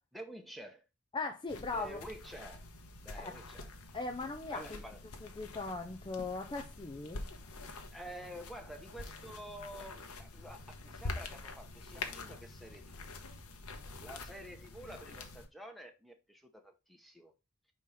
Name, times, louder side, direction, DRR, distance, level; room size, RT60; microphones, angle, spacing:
voice 1, 0.1-0.8 1.7-2.6 3.0-3.7 4.5-5.0 7.9-13.0 13.7-17.3, equal, ahead, 0.9 m, -49 dB
voice 2, 1.1-2.0 3.1-3.4 3.9-4.8 5.2-7.3, left 3 dB, 20° left, 0.5 m, -39 dB
sound 1, 1.5-15.5, left 3 dB, 75° left, 1.1 m, -46 dB
5.5 x 4.3 x 4.8 m
head